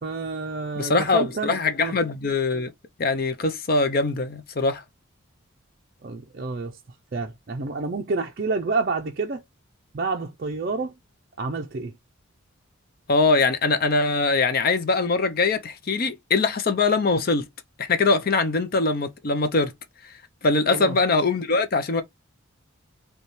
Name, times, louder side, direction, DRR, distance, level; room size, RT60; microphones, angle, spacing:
voice 1, 0.0-2.0 6.0-9.4 9.9-10.9 11.4-11.9 20.7-21.0, right 3 dB, 45° right, 0.4 m, -29 dB
voice 2, 0.8-2.7 3.0-4.8 13.1-17.4 17.8-19.7 20.4-22.0, left 3 dB, 45° left, 0.5 m, -22 dB
5.5 x 2.3 x 3.0 m
head